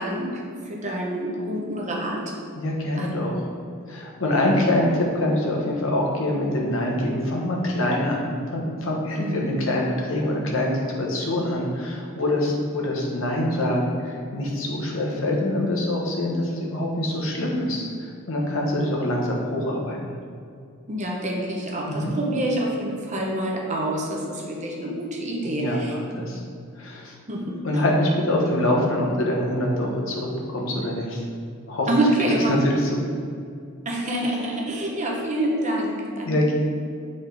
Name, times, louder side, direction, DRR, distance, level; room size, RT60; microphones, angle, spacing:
voice 1, 0.0-2.3 3.0-3.1 9.2-9.5 20.9-25.9 27.3-27.8 28.4-28.7 31.9-32.5 33.8-36.4, right 1 dB, 35° right, -2 dB, 0.8 m, -27 dB
voice 2, 2.5-3.3 3.9-20.0 21.9-22.1 25.4-26.4 26.7-27.1 27.6-31.2 31.7-31.9 32.3-33.1 36.2-36.5, left 1 dB, 65° left, -2 dB, 1.2 m, -25 dB
7.8 x 3.9 x 3.4 m, 2.3 s
head